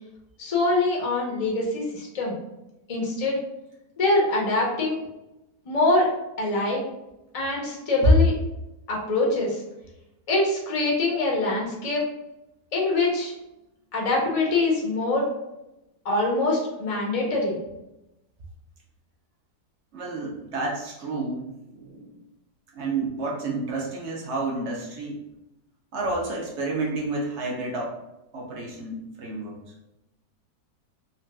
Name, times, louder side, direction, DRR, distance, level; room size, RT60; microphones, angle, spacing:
voice 1, 0.4-2.4 2.9-3.4 4.0-5.0 5.7-6.1 6.4-6.8 7.3-8.3 8.9-9.6 10.3-12.0 12.7-13.3 13.9-15.3 16.0-17.6, left 2 dB, 60° left, -3 dB, 0.3 m, -24 dB
voice 2, 19.9-22.2 22.7-25.2 25.9-28.0 28.3-29.6, right 2 dB, 60° right, -2 dB, 0.7 m, -30 dB
3.9 x 2.2 x 2.2 m, 0.92 s
omnidirectional pair, 1.7 m